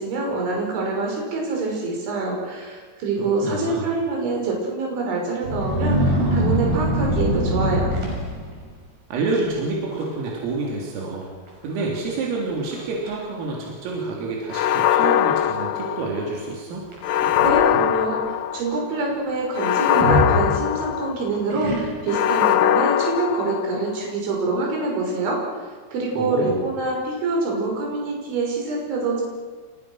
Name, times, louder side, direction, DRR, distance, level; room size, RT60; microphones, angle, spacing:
voice 1, 0.0-8.0 17.4-18.2 18.5-25.4 25.9-29.2, right 3 dB, 65° right, -1 dB, 8.1 m, -25 dB
voice 2, 3.2-3.9 9.1-11.3 11.6-16.9 26.1-26.7, right 3 dB, 90° right, -2 dB, 6.1 m, -28 dB
sound 1, 5.4-8.7 9.3-9.6 9.9-10.3 10.6-10.7 11.5-11.6 12.1-12.2 12.7-13.1 14.0-14.1 16.9-17.9 19.9-21.0 21.5-22.2, right 1 dB, 45° right, 8.0 m, -24 dB
sound 2, 14.5-16.4 17.0-18.8 19.5-21.4 22.1-24.0, left 10 dB, 90° left, 2.0 m, -21 dB
30.0 x 29.5 x 6.5 m, 1.5 s
omnidirectional pair, 5.8 m